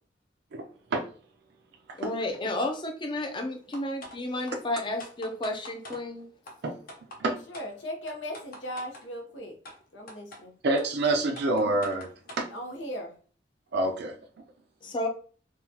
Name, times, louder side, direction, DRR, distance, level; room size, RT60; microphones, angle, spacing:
voice 1, 1.9-6.3 14.8-15.1, left 1 dB, 25° left, 4 dB, 0.5 m, -32 dB
sound 1, 3.7-4.2 4.5-4.6 5.0-6.0 6.5-6.6 6.9-7.2 7.5-7.7 8.1-9.0 9.7-9.8 10.1-10.4 10.8-10.9 11.4-12.5, left 1 dB, 55° left, 0.8 m, -44 dB
voice 2, 7.5-9.6 9.9-10.6 12.5-13.1, equal, 90° left, 3 dB, 0.9 m, -38 dB
voice 3, 10.6-12.1 12.4-12.5 13.7-14.1, right 2 dB, 65° right, 4 dB, 0.5 m, -26 dB
3.7 x 2.3 x 2.8 m, 0.41 s
head